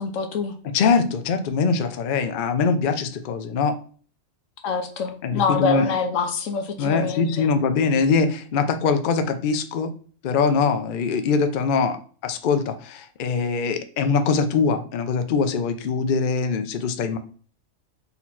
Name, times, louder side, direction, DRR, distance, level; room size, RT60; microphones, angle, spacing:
voice 1, 0.0-0.6 4.6-7.5, left 5 dB, 80° left, 6 dB, 1.2 m, -25 dB
voice 2, 0.6-3.8 5.2-5.9 6.8-9.9 10.2-17.2, left 5 dB, 55° left, 8 dB, 0.6 m, -22 dB
4.1 x 2.9 x 4.1 m, 0.42 s
omnidirectional pair, 1.3 m